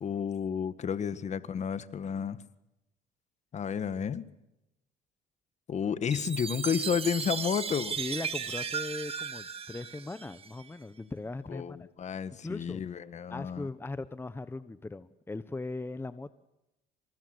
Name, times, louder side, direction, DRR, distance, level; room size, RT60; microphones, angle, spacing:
voice 1, 0.0-2.4 3.5-4.2 5.7-8.0 11.5-13.7, left 7 dB, 45° left, 13 dB, 1.8 m, -31 dB
Chime, 6.1-10.6, right 6 dB, 35° right, 2.3 m, -36 dB
voice 2, 8.0-11.8 12.4-12.8 13.3-16.3, left 2 dB, 15° left, 13 dB, 1.1 m, -39 dB
28.0 x 26.5 x 8.1 m, 0.91 s
cardioid pair, 110°, 17 cm